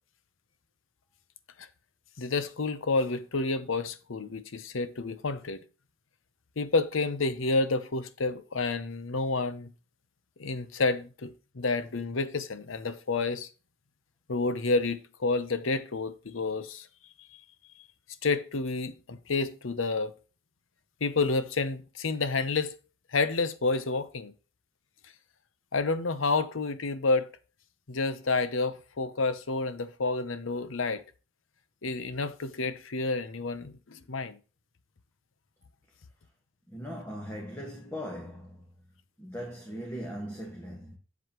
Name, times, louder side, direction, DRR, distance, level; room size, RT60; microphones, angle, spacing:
voice 1, 2.2-5.6 6.6-9.7 10.4-13.5 14.3-16.9 17.3-17.4 18.2-20.1 21.0-22.8 23.1-24.3 25.7-27.4 27.9-31.0 31.8-34.4, left 3 dB, 80° left, 0.8 m, -29 dB
voice 2, 36.7-38.6 39.2-41.0, equal, 10° left, 1.5 m, -39 dB
7.9 x 7.1 x 3.0 m
head